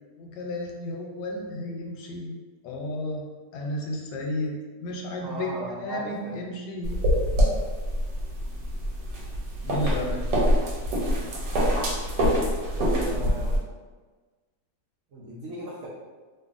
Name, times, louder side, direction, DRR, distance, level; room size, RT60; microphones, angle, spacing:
voice 1, 0.2-2.4 2.6-3.2 3.5-7.0 9.6-10.2, left 1 dB, 90° left, 0 dB, 1.2 m, -33 dB
voice 2, 5.2-6.4 12.8-13.6 15.1-15.9, right 1 dB, 70° right, -7 dB, 0.8 m, -36 dB
sound 1, 6.8-13.6, equal, 90° right, 1.3 m, -25 dB
2.6 x 2.6 x 2.4 m, 1.4 s
omnidirectional pair, 1.8 m